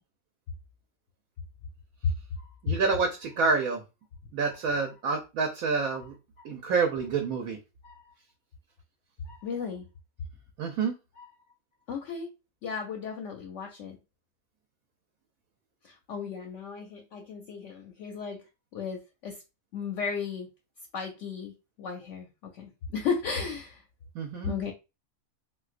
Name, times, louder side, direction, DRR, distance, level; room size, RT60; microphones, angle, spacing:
voice 1, 2.0-2.5 4.7-4.8 5.9-6.0 6.4-6.5 7.8-8.1 9.2-9.9 11.2-11.3 11.9-12.3 12.6-14.0 15.8-18.4 18.7-19.4 19.7-20.5 20.9-21.5 21.8-23.8 24.4-24.7, left 5 dB, 65° left, 0.8 m, -35 dB
voice 2, 2.6-3.8 4.3-6.1 6.4-7.6 10.6-10.9 24.1-24.6, right 4 dB, 75° right, 1.0 m, -28 dB
3.8 x 2.2 x 2.4 m
omnidirectional pair, 1.6 m